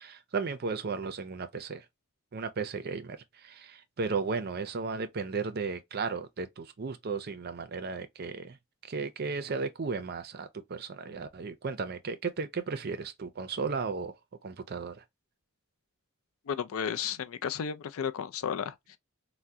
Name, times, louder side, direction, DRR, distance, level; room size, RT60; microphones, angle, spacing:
voice 1, 0.0-1.9 2.3-8.6 8.8-14.1 14.4-15.0, right 4 dB, 50° right, 0.5 m, -35 dB
voice 2, 16.5-19.0, left 7 dB, 75° left, 0.4 m, -33 dB
3.5 x 2.1 x 2.7 m
head